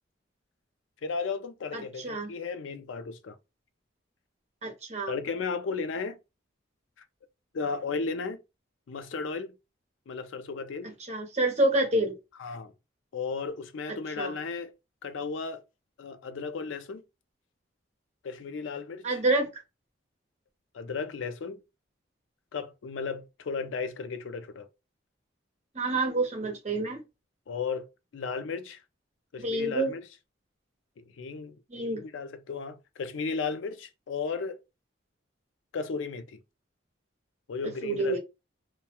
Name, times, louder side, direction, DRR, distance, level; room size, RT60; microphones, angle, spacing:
voice 1, 1.0-3.4 5.1-6.2 7.5-8.4 8.9-9.5 10.1-10.9 12.4-12.7 13.1-14.7 15.0-15.6 16.0-17.0 18.2-19.2 20.7-21.6 22.5-24.7 27.5-28.8 29.3-30.0 31.0-34.6 35.7-36.4 37.5-38.2, left 4 dB, 85° left, 0.4 m, -35 dB
voice 2, 1.7-2.3 4.6-5.1 11.1-12.1 14.2-14.4 19.0-19.5 25.7-27.0 29.4-29.9 31.7-32.0 37.8-38.2, right 2 dB, 35° right, 0.7 m, -27 dB
2.2 x 2.2 x 2.8 m
head